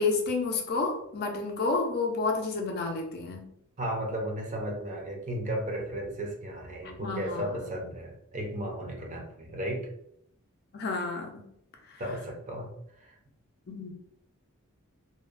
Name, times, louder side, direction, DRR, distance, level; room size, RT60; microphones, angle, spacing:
voice 1, 0.0-3.4 7.0-7.4 10.7-11.4 11.9-12.0 13.7-13.9, left 3 dB, 45° left, 2 dB, 0.4 m, -30 dB
voice 2, 3.8-9.9 12.0-13.2, right 1 dB, 35° right, 0 dB, 0.5 m, -35 dB
2.6 x 2.1 x 2.4 m, 0.72 s
head